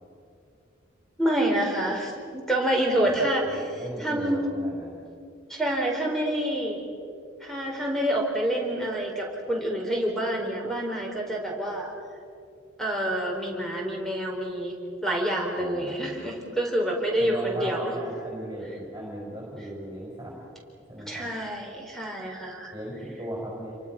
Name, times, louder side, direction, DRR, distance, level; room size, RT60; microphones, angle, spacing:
voice 1, 1.2-4.5 5.5-6.8 7.4-11.9 12.8-14.7 15.0-18.0 21.1-22.7, right 1 dB, ahead, 0 dB, 4.5 m, -27 dB
voice 2, 3.0-5.0 15.5-16.4 17.2-20.4 20.9-21.3 22.7-23.7, right 1 dB, 15° right, -4 dB, 5.7 m, -37 dB
29.0 x 24.0 x 6.1 m, 2.5 s
head